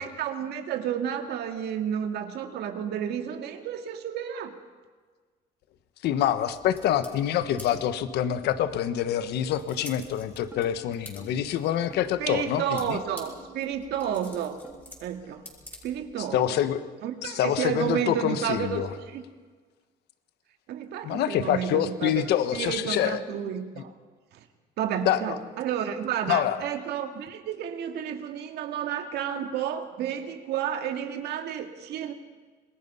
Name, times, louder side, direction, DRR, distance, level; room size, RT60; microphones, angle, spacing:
voice 1, 0.0-4.5 12.2-14.6 15.0-15.4 15.8-16.6 17.0-18.8 19.1-19.2 20.7-22.2 22.5-23.9 24.3-24.4 24.8-32.1, right 9 dB, 75° right, 6 dB, 2.1 m, -31 dB
voice 2, 6.0-13.0 16.3-16.8 17.2-18.9 21.0-23.5 25.0-25.4 26.3-26.6, left 10 dB, 80° left, 11 dB, 1.3 m, -26 dB
sound 1, 6.4-16.3, left 1 dB, 10° left, 5.7 m, -50 dB
sound 2, 7.7-7.9 8.4-8.5 9.1-9.2 9.8-9.9 10.5-10.7 11.2-11.4 11.9-12.1 12.6-12.7 13.3-13.4 13.9-14.0 14.6-14.7, right 1 dB, 10° right, 4.6 m, -48 dB
27.0 x 20.5 x 5.6 m, 1.4 s
cardioid pair, 110°, 17 cm